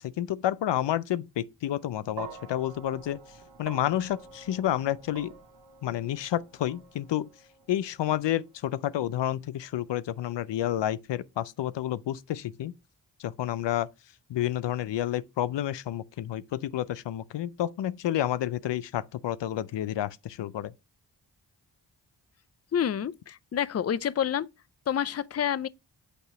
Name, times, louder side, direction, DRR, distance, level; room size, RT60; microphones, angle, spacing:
voice 1, 0.0-3.2 3.6-5.3 5.8-7.3 7.7-12.7 13.2-13.9 14.3-20.7, left 12 dB, 80° left, 0.5 m, -30 dB
sound 1, 2.2-10.5, right 4 dB, 70° right, 1.8 m, -48 dB
voice 2, 22.7-24.5 24.9-25.7, left 9 dB, 35° left, 0.5 m, -28 dB
8.4 x 3.0 x 5.7 m
cardioid pair, 50°, 43 cm